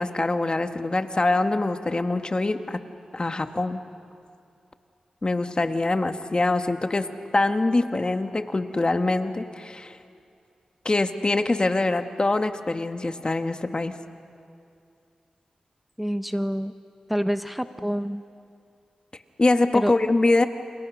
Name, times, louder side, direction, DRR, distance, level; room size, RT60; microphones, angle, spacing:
voice 1, 0.0-2.8 3.1-3.8 5.2-7.1 7.3-10.0 10.8-13.9 19.4-20.4, left 2 dB, 40° left, 7 dB, 1.6 m, -24 dB
voice 2, 16.0-16.7 17.1-18.2 19.7-19.9, equal, 5° right, 9 dB, 1.1 m, -27 dB
29.5 x 28.5 x 6.4 m, 2.5 s
cardioid pair, 40°, 2 cm